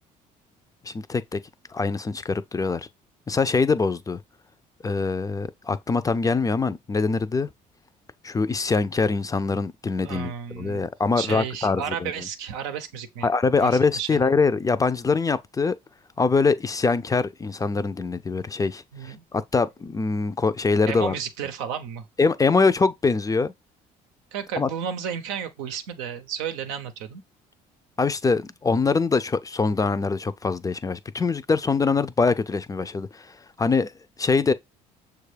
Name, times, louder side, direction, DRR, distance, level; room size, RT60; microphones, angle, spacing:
voice 1, 0.9-1.4 1.7-2.9 3.3-4.2 4.8-7.5 8.2-12.1 13.2-15.8 16.2-21.1 22.2-23.5 24.6-24.7 28.0-33.2 33.6-33.9 34.2-34.5, left 4 dB, 20° left, 0.4 m, -23 dB
voice 2, 10.0-10.8 11.2-13.3 13.6-14.2 18.9-19.2 20.9-22.1 24.3-27.2, right 8 dB, 90° right, 0.6 m, -32 dB
6.4 x 2.3 x 3.2 m
supercardioid pair, 70°, 17 cm